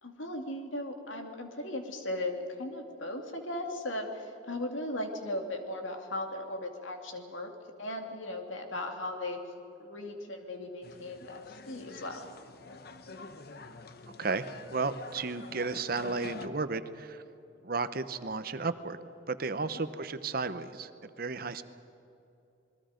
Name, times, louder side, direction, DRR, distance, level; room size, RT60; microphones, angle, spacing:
voice 1, 0.0-7.5 7.8-9.4 9.8-12.3, left 1 dB, 80° left, 4 dB, 2.6 m, -37 dB
sound 1, 10.8-16.5, left 3 dB, 50° left, 1.0 m, -47 dB
voice 2, 14.2-17.2 17.6-19.0 19.3-20.9 21.2-21.6, right 3 dB, 50° right, 12 dB, 0.8 m, -33 dB
28.0 x 21.5 x 5.2 m, 2.8 s
head